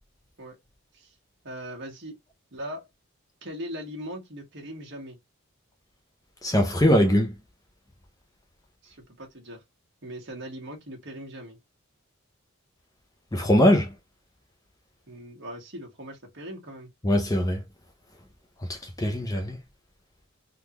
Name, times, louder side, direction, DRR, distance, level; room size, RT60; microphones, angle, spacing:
voice 1, 1.4-2.2 2.5-2.9 3.4-5.2 8.8-9.6 10.0-11.6 15.1-16.9, equal, 55° right, 1.3 m, -40 dB
voice 2, 6.4-7.3 13.3-13.9 17.0-17.6 18.7-19.6, equal, 15° left, 0.5 m, -21 dB
3.6 x 2.4 x 2.9 m
head